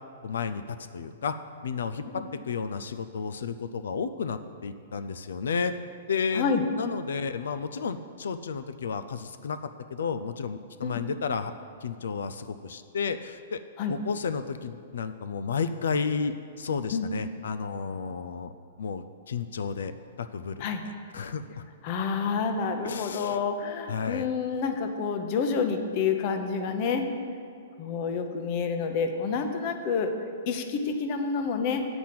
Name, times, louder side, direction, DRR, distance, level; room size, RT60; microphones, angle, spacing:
voice 1, 0.2-1.3 1.6-5.7 6.1-11.5 11.8-13.6 13.9-18.5 18.8-19.9 20.2-20.7 21.1-21.6 22.8-23.4 23.9-24.3, left 5 dB, 85° left, 11 dB, 0.4 m, -32 dB
voice 2, 21.8-27.1 27.8-30.1 30.5-31.9, left 5 dB, 30° left, 6 dB, 0.7 m, -28 dB
8.5 x 6.0 x 7.5 m, 2.3 s
hypercardioid pair, 170°, 0 cm